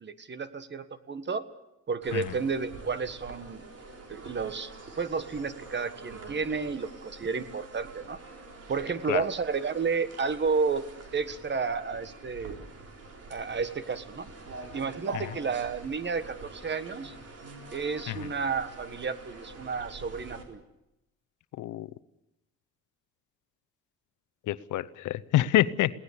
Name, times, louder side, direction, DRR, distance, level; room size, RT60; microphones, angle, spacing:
voice 1, 0.0-1.4 1.9-3.6 4.1-4.7 5.0-8.2 8.7-10.9 11.1-12.6 13.3-14.3 14.7-17.1 17.7-20.6, right 5 dB, 35° right, 1.5 m, -31 dB
sound 1, 2.0-20.4, right 3 dB, 55° right, 4.3 m, -46 dB
voice 2, 24.5-25.9, left 14 dB, 80° left, 0.8 m, -27 dB
22.0 x 17.5 x 8.4 m
cardioid pair, 90°, 30 cm